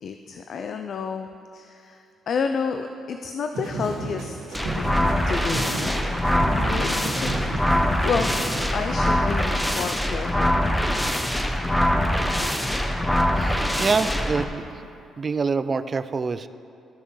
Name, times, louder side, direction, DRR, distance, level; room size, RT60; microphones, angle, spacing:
voice 1, 0.0-4.4 4.7-6.1 6.6-7.3 7.8-8.3 8.7-10.6, left 6 dB, 60° left, 6 dB, 0.4 m, -30 dB
sound 1, 3.5-8.9, right 3 dB, 80° right, 1.4 m, -33 dB
sound 2, 4.5-14.4, left 1 dB, 10° left, 0.7 m, -23 dB
voice 2, 13.3-14.6 15.2-16.5, right 4 dB, 35° right, 13 dB, 0.3 m, -25 dB
14.0 x 6.5 x 3.2 m, 2.6 s
cardioid pair, 90°, 0 cm